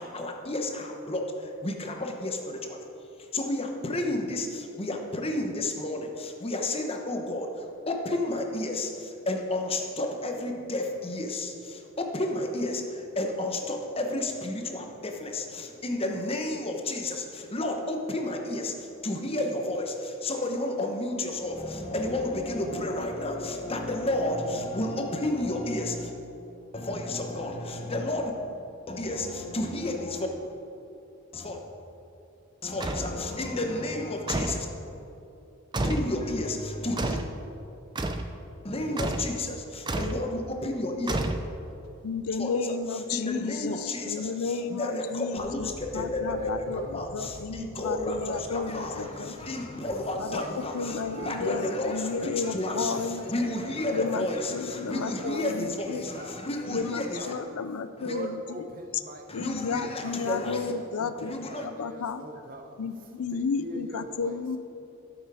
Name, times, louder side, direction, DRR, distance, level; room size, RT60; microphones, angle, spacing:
voice 1, 0.0-2.9 3.2-26.1 26.7-28.3 28.9-30.3 31.3-31.6 32.6-34.7 35.8-37.2 38.6-41.2 42.4-57.3 58.0-58.2 59.3-60.7 61.2-61.7, left 1 dB, 25° left, 3 dB, 1.0 m, -31 dB
sound 1, 32.8-33.1 34.3-34.7 35.7-36.1 37.0-37.3 38.0-38.3 39.0-39.3 39.9-40.2 41.1-41.7, right 2 dB, 20° right, 0.5 m, -30 dB
voice 2, 42.0-45.7 45.9-49.3 50.3-53.3 53.9-54.3 54.5-56.0 56.7-58.4 59.3-62.2 62.8-64.6, left 5 dB, 75° left, 11 dB, 0.5 m, -32 dB
voice 3, 43.0-44.8 45.7-47.2 47.8-49.3 49.8-51.8 52.3-54.1 54.9-55.5 55.9-56.5 56.9-57.5 57.9-60.3 60.9-64.4, right 2 dB, 40° right, 5 dB, 0.8 m, -44 dB
sound 2, 45.4-56.9, left 1 dB, 60° left, 1.0 m, -49 dB
13.0 x 7.2 x 4.9 m, 2.8 s
head